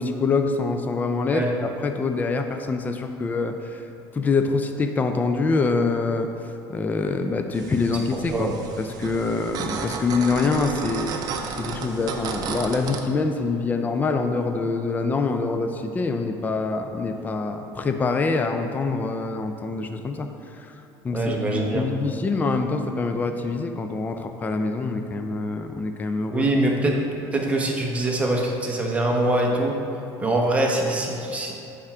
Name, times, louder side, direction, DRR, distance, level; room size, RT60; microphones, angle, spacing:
voice 1, 0.0-3.8 4.1-6.3 6.7-11.1 11.6-20.3 20.6-20.7 21.0-26.5, left 3 dB, 20° left, 6 dB, 0.4 m, -25 dB
sound 1, 7.5-13.0, right 5 dB, 50° right, 0.6 m, -33 dB
voice 2, 21.1-21.9 26.3-27.0 27.3-29.8 30.2-31.5, right 1 dB, 15° right, 0 dB, 0.9 m, -23 dB
9.5 x 3.6 x 4.4 m, 2.8 s
cardioid pair, 130°, 9 cm